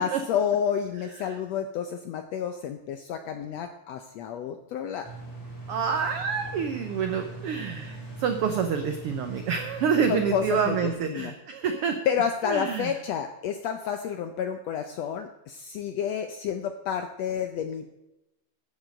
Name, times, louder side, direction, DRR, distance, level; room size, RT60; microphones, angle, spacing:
voice 1, 0.0-5.1 10.1-11.3 12.1-18.0, left 8 dB, 80° left, 7 dB, 1.5 m, -30 dB
sound 1, 5.0-10.9, right 2 dB, 35° left, 3.0 m, -41 dB
voice 2, 5.7-12.0 12.5-12.9, right 6 dB, 85° right, 6 dB, 1.2 m, -27 dB
10.5 x 7.5 x 7.6 m, 0.94 s
omnidirectional pair, 3.7 m